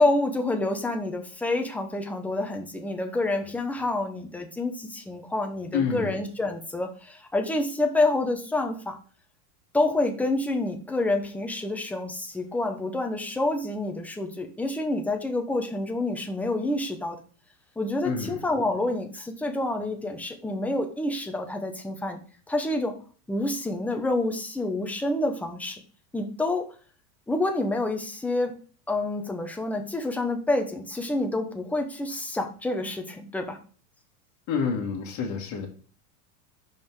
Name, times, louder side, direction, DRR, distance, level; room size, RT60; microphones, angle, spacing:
voice 1, 0.0-9.0 9.7-17.2 17.8-22.2 22.5-23.0 23.3-25.8 26.1-26.7 27.3-28.5 28.9-33.6, left 2 dB, 5° left, 4 dB, 0.8 m, -28 dB
voice 2, 5.7-6.2 18.0-18.4 34.5-35.7, left 6 dB, 40° left, -1 dB, 1.6 m, -28 dB
5.3 x 4.8 x 4.7 m, 0.41 s
supercardioid pair, 125°, 46 cm